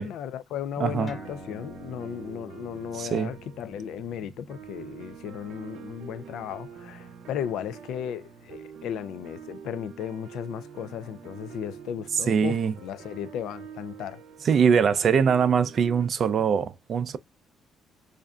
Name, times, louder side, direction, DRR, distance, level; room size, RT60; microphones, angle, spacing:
voice 1, 0.0-12.6 12.8-14.2, left 9 dB, 70° left, 0.3 m, -35 dB
voice 2, 0.8-1.1 2.9-3.4 12.3-12.7 14.4-17.2, right 7 dB, 35° right, 0.4 m, -22 dB
sound 1, 0.8-16.1, right 7 dB, 90° right, 0.7 m, -45 dB
sound 2, 1.1-8.0, equal, 10° left, 0.7 m, -50 dB
5.2 x 2.5 x 2.3 m
cardioid pair, 175°, 0 cm